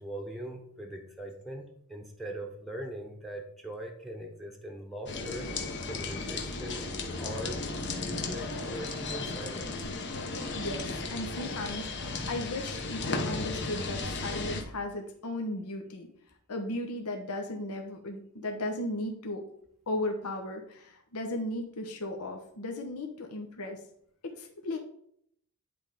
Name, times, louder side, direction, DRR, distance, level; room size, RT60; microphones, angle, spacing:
voice 1, 0.0-1.6 1.9-5.5 5.8-6.9 7.2-7.6 7.9-9.7, right 1 dB, ahead, 3 dB, 0.9 m, -41 dB
sound 1, 5.1-14.6, left 3 dB, 50° left, 1.0 m, -35 dB
voice 2, 10.5-16.1 16.5-19.5 19.9-23.8 24.2-24.8, left 1 dB, 75° left, 3 dB, 1.0 m, -36 dB
9.9 x 3.5 x 5.0 m, 0.69 s
head